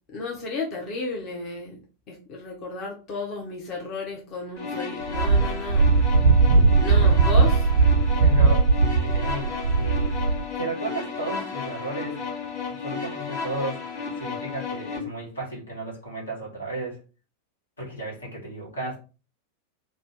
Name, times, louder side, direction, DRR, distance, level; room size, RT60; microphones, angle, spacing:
voice 1, 0.1-1.8 2.1-5.9 6.8-7.7, left 3 dB, 35° left, -1 dB, 0.8 m, -33 dB
sound 1, 4.6-15.0, left 5 dB, 60° left, 1.4 m, -33 dB
Wind, 5.1-10.4, right 4 dB, 65° right, 0.4 m, -19 dB
voice 2, 6.5-7.1 8.2-10.1 10.6-12.2 12.7-13.9 14.2-17.0 17.8-19.0, right 2 dB, 75° left, -2 dB, 1.3 m, -34 dB
2.6 x 2.1 x 3.5 m, 0.33 s
figure-of-eight pair, 90°, 0 cm